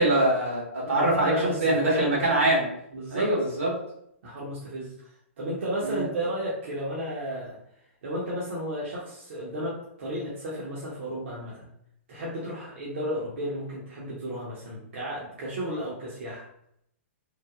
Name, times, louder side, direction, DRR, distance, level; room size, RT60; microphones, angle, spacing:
voice 1, 0.0-1.3 1.6-2.7 3.1-3.8 5.8-6.0, right 1 dB, 85° right, -4 dB, 1.4 m, -23 dB
voice 2, 0.8-2.3 2.9-3.3 4.2-5.1 5.4-7.6 8.0-11.7 12.1-16.5, equal, 65° right, -6 dB, 0.8 m, -33 dB
3.2 x 2.1 x 2.3 m, 0.73 s
hypercardioid pair, 130°, 7 cm